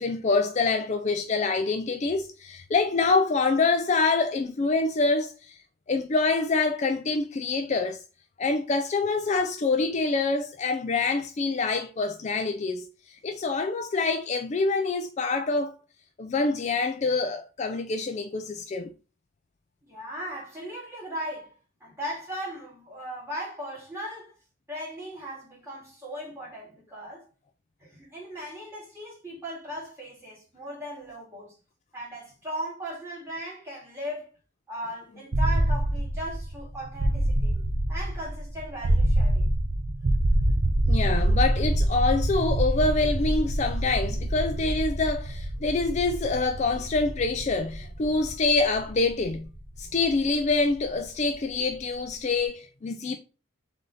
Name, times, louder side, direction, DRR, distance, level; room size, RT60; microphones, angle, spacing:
voice 1, 0.0-5.6 5.9-8.0 8.4-12.9 13.2-15.7 16.2-18.9 40.8-49.5 49.8-53.2, left 3 dB, 35° left, 0.3 m, -26 dB
voice 2, 19.8-21.5 21.8-24.3 24.7-27.2 27.8-31.5 31.9-34.3 34.7-37.5 37.9-39.5, equal, 15° right, 2.2 m, -37 dB
sound 1, 35.3-51.2, right 1 dB, 60° right, 0.7 m, -26 dB
3.8 x 3.5 x 3.9 m
head